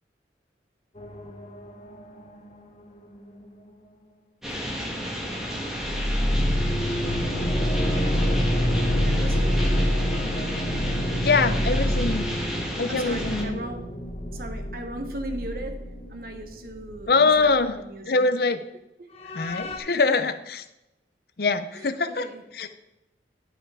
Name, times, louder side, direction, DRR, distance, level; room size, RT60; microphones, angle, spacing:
sound 1, 1.0-3.7 5.7-17.1 17.4-17.5 19.2-19.8, equal, 35° left, 1.0 m, -27 dB
sound 2, 4.4-13.4, equal, 5° right, 1.4 m, -32 dB
voice 1, 9.0-9.7 12.9-13.8 14.3-18.3 19.0-19.1 21.7-22.4, right 1 dB, 55° right, 6 dB, 1.2 m, -37 dB
voice 2, 11.2-12.3 12.8-13.6 17.1-17.8 18.1-18.6 19.3-20.6 21.4-22.3 22.6-22.7, left 4 dB, 55° left, 10 dB, 0.7 m, -23 dB
11.0 x 5.6 x 4.9 m, 0.90 s
head